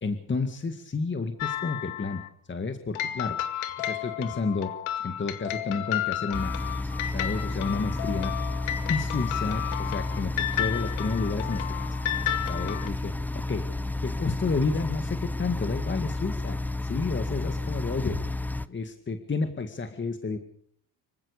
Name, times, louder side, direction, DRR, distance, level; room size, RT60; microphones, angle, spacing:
voice 1, 0.0-2.2 2.5-3.4 3.8-4.7 5.0-8.3 8.9-11.6 12.5-13.7 14.0-18.3 18.7-20.4, left 4 dB, 25° left, 7 dB, 2.0 m, -31 dB
sound 1, 1.4-2.3 3.0-12.9, left 12 dB, 75° left, 2.2 m, -32 dB
sound 2, 6.3-18.7, left 2 dB, 5° left, 0.7 m, -31 dB
25.5 x 15.5 x 6.7 m, 0.66 s
cardioid pair, 105°, 49 cm